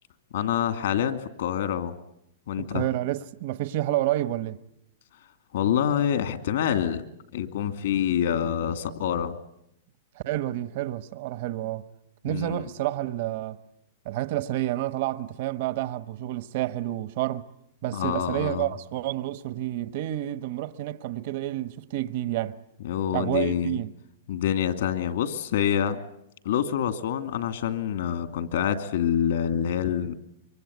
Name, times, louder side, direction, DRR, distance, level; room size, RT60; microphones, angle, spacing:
voice 1, 0.3-1.9 2.5-2.8 5.5-7.0 7.3-9.4 12.3-12.7 17.9-18.7 22.8-23.8 24.3-26.0 26.4-30.1, left 9 dB, 70° left, 2.5 m, -26 dB
voice 2, 2.6-4.6 10.1-11.8 12.2-13.6 14.0-17.4 17.8-22.6 23.1-23.9, right 14 dB, 50° right, 1.1 m, -29 dB
25.5 x 24.0 x 9.6 m
supercardioid pair, 155°, 0 cm